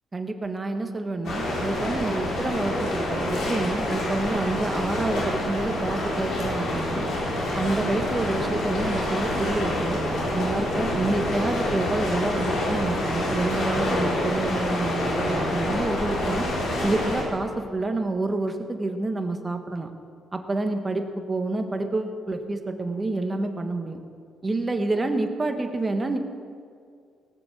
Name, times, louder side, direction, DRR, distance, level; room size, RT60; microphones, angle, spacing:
voice 1, 0.1-7.1 7.5-10.0 10.3-16.5 16.8-19.9 20.3-24.0 24.4-26.2, right 2 dB, 25° right, 6 dB, 1.4 m, -28 dB
sound 1, 1.2-17.2, left 1 dB, 75° left, 4.1 m, -27 dB
18.5 x 7.2 x 7.2 m, 2.2 s
cardioid pair, 90°, 0 cm